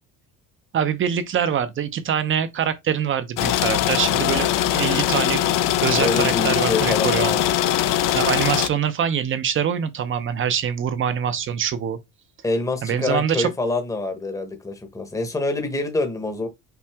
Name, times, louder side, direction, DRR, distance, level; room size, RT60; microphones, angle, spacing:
voice 1, 0.7-5.4 5.8-7.4 7.8-12.0 12.8-13.5, right 8 dB, 35° right, 0.7 m, -24 dB
sound 1, 3.4-8.7, left 12 dB, 65° left, 0.6 m, -21 dB
voice 2, 6.0-7.5 12.4-16.5, left 2 dB, 10° left, 0.9 m, -26 dB
5.8 x 2.4 x 3.5 m
cardioid pair, 145°, 35 cm